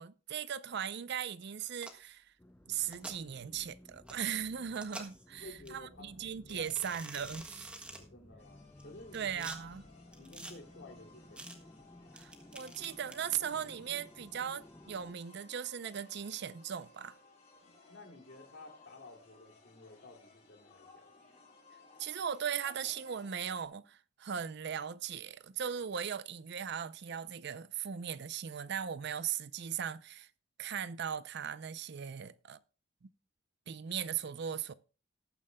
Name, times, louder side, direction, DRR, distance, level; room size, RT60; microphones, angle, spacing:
voice 1, 0.0-2.3 2.7-7.7 9.1-9.8 12.1-17.2 22.0-30.3 30.6-32.6 33.7-34.7, right 8 dB, 55° right, 0.5 m, -38 dB
sound 1, 1.7-2.1 2.8-3.1 4.1-4.2 4.7-5.2 5.6-5.7 6.5-8.0 8.8-9.6 10.1-10.5 11.4-11.6 12.2-13.3, right 1 dB, 5° right, 1.4 m, -47 dB
sound 2, 2.4-15.2, left 1 dB, 10° left, 0.5 m, -57 dB
voice 2, 5.3-6.8 8.0-9.4 10.1-11.5 17.6-21.2, left 2 dB, 60° left, 2.6 m, -54 dB
sound 3, 8.4-23.6, left 3 dB, 30° left, 5.9 m, -61 dB
19.0 x 9.2 x 2.2 m
head